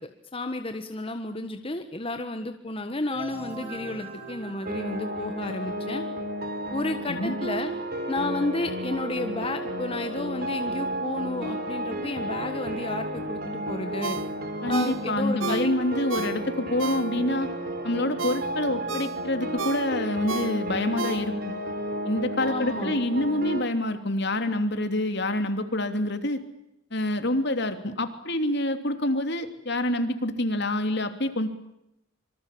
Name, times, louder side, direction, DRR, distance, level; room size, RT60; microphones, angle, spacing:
voice 1, 0.3-6.0 6.7-7.7 8.1-14.2 14.7-15.7 22.5-23.0, left 2 dB, 30° left, 7 dB, 1.4 m, -32 dB
sound 1, 3.1-5.8, right 3 dB, 30° right, 6.7 m, -41 dB
sound 2, 4.6-23.6, right 1 dB, 50° right, 3.7 m, -32 dB
Ringtone, 14.0-17.5 17.9-21.6 22.0-22.1, right 4 dB, 85° right, 1.5 m, -34 dB
voice 2, 14.6-17.5 17.8-21.6 22.0-26.4 26.9-31.5, left 1 dB, 60° left, 8 dB, 3.1 m, -27 dB
26.5 x 24.5 x 8.6 m, 0.83 s
head